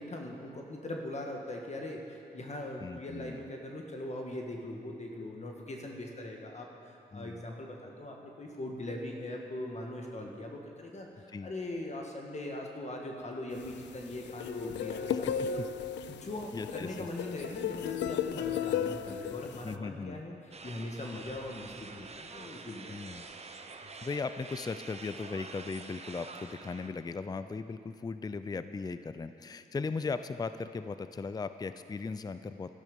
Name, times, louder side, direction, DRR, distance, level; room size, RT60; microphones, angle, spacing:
voice 1, 0.0-15.7 16.1-20.3 20.6-23.2, left 1 dB, 40° left, 1 dB, 1.6 m, -41 dB
voice 2, 2.8-3.5 7.1-7.4 11.3-11.5 15.1-15.5 16.1-16.2 16.5-17.1 19.6-20.2 22.9-23.3 24.0-32.7, left 4 dB, 20° left, 12 dB, 0.4 m, -38 dB
sound 1, 13.6-19.8, left 8 dB, 85° left, 0.4 m, -35 dB
sound 2, 20.5-26.9, right 4 dB, 35° right, 0.9 m, -47 dB
13.0 x 11.5 x 5.3 m, 2.6 s
cardioid pair, 65°, 18 cm